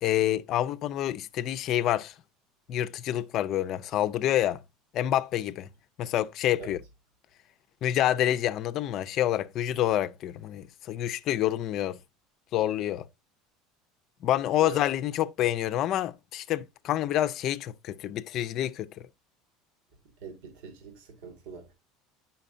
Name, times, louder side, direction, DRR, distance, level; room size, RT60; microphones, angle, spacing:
voice 1, 0.0-2.1 2.7-4.6 4.9-5.7 6.0-6.8 7.8-12.0 12.5-13.1 14.2-19.1, left 12 dB, 50° left, 0.5 m, -27 dB
voice 2, 20.2-21.7, right 4 dB, 80° right, 1.8 m, -43 dB
8.6 x 5.7 x 2.6 m
supercardioid pair, 125°, 0 cm